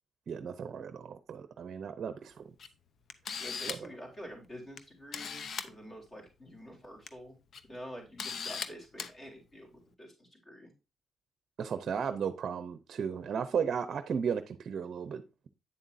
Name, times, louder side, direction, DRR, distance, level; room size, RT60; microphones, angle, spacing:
voice 1, 0.3-2.4 3.7-3.9 11.6-15.5, right 7 dB, 55° right, 0.6 m, -35 dB
Camera, 2.6-2.7 3.1-3.9 4.8-4.9 5.1-5.7 6.8-7.1 7.5-7.6 8.2-8.7 9.0-9.1, left 6 dB, 55° left, 0.7 m, -38 dB
voice 2, 3.4-7.4 7.7-10.7, equal, 25° left, 3.8 m, -48 dB
8.9 x 7.2 x 2.6 m
cardioid pair, 90°, 0 cm